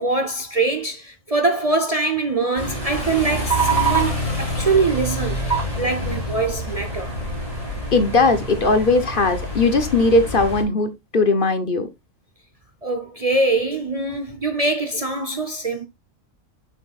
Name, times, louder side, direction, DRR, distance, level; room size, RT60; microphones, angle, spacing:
voice 1, 0.0-7.1 12.8-15.9, right 3 dB, 35° right, 0.7 m, -23 dB
sound 1, 2.6-10.6, right 2 dB, 25° left, 3.1 m, -26 dB
voice 2, 7.9-11.9, left 3 dB, 45° left, 1.0 m, -18 dB
7.0 x 6.7 x 2.4 m
omnidirectional pair, 1.3 m